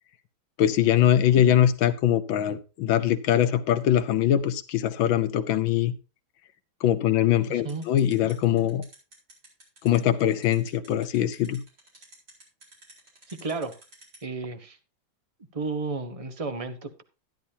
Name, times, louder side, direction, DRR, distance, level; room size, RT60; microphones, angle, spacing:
voice 1, 0.6-5.9 6.8-8.8 9.8-11.6, left 11 dB, 75° left, 10 dB, 1.5 m, -22 dB
voice 2, 7.5-7.8 13.4-13.7 14.2-14.8 15.5-17.0, right 4 dB, 35° right, 9 dB, 0.6 m, -32 dB
sound 1, 7.7-14.2, right 1 dB, 55° right, 4.8 m, -50 dB
12.5 x 10.5 x 2.8 m, 0.31 s
omnidirectional pair, 2.2 m